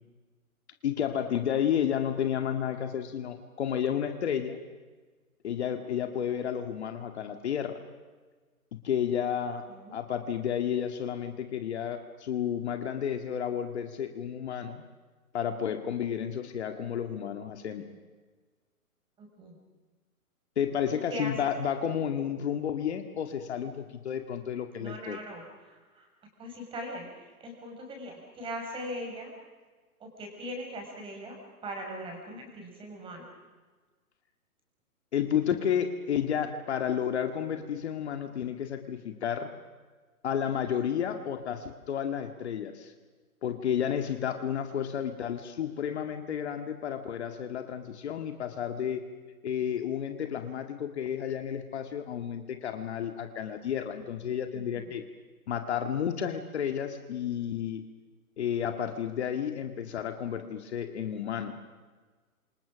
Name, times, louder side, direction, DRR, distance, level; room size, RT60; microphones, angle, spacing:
voice 1, 0.8-4.6 5.4-7.8 8.8-14.8 15.3-17.8 20.6-25.2 35.1-39.5 40.2-42.9 43.4-49.0 49.4-55.0 55.5-57.8 58.4-61.6, left 9 dB, 45° left, 7 dB, 2.0 m, -31 dB
voice 2, 19.2-19.6 20.9-21.5 24.8-26.1 26.4-29.3 30.0-33.2 54.5-54.9, equal, 10° right, 1 dB, 5.8 m, -40 dB
27.5 x 27.0 x 6.3 m, 1.4 s
hypercardioid pair, 145°, 44 cm